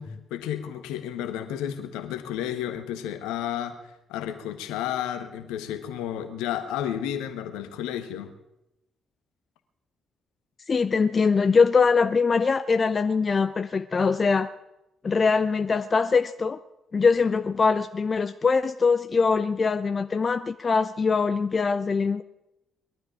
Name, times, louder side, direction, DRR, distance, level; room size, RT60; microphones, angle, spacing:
voice 1, 0.0-3.8 4.1-8.3, left 10 dB, 70° left, 9 dB, 1.3 m, -32 dB
voice 2, 10.7-14.5 15.0-16.6 16.9-22.2, left 5 dB, 40° left, 11 dB, 0.7 m, -22 dB
21.0 x 12.0 x 5.1 m, 0.89 s
figure-of-eight pair, 40°, 0 cm